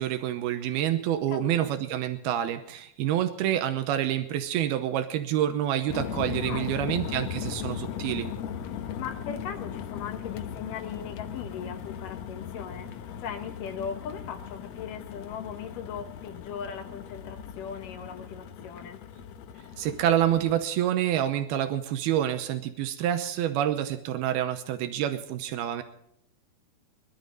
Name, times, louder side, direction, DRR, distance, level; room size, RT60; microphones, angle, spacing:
voice 1, 0.0-8.3 19.8-25.8, right 11 dB, 85° right, 9 dB, 2.8 m, -27 dB
voice 2, 1.3-1.7 6.4-7.2 9.0-19.0, left 7 dB, 65° left, 7 dB, 2.5 m, -39 dB
sound 1, 5.9-20.6, left 8 dB, 90° left, 1.5 m, -38 dB
23.0 x 12.5 x 3.9 m, 0.71 s
omnidirectional pair, 4.5 m